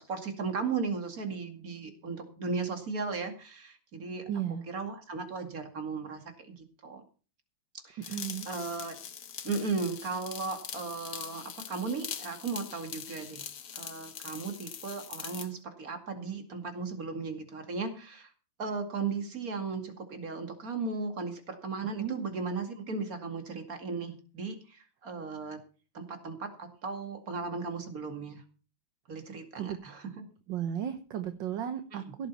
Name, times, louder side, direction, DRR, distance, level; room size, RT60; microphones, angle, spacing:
voice 1, 0.0-4.3 4.7-7.0 7.8-9.0 9.4-13.5 13.7-18.3 18.6-25.6 25.9-28.4 29.1-30.2 31.9-32.0, right 4 dB, 45° right, 6 dB, 2.7 m, -36 dB
voice 2, 4.3-4.7 8.1-8.5 22.0-22.2 29.6-29.8 30.5-32.3, right 9 dB, 65° right, 9 dB, 1.7 m, -34 dB
sound 1, 8.0-15.5, left 8 dB, 55° left, 1.7 m, -43 dB
16.5 x 8.4 x 5.6 m, 0.36 s
omnidirectional pair, 2.3 m